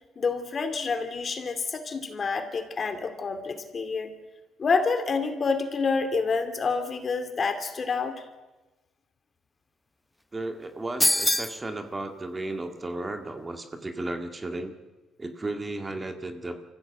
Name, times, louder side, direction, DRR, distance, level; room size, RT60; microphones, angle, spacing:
voice 1, 0.2-4.1 4.6-8.1, left 4 dB, 40° left, 7 dB, 2.5 m, -28 dB
voice 2, 10.3-14.7 15.2-16.6, right 2 dB, 25° right, 6 dB, 1.9 m, -34 dB
sound 1, 11.0-11.6, left 1 dB, 5° left, 0.6 m, -23 dB
24.0 x 15.0 x 7.9 m, 1.2 s
cardioid pair, 90°, 0 cm